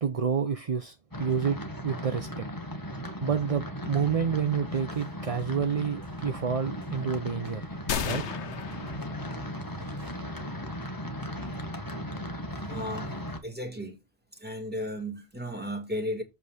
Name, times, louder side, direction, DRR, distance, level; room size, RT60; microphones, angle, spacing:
voice 1, 0.0-2.5 3.2-7.7 8.0-8.2, right 6 dB, 40° right, 0.6 m, -29 dB
sound 1, 1.1-13.4, equal, 20° left, 1.4 m, -37 dB
sound 2, 4.1-9.2 9.7-10.2, right 5 dB, 70° right, 1.6 m, -54 dB
sound 3, 7.9-9.8, left 7 dB, 75° left, 1.2 m, -34 dB
voice 2, 12.5-13.1 13.4-14.0 14.3-16.2, equal, 10° right, 2.0 m, -35 dB
8.3 x 3.7 x 6.5 m
omnidirectional pair, 1.2 m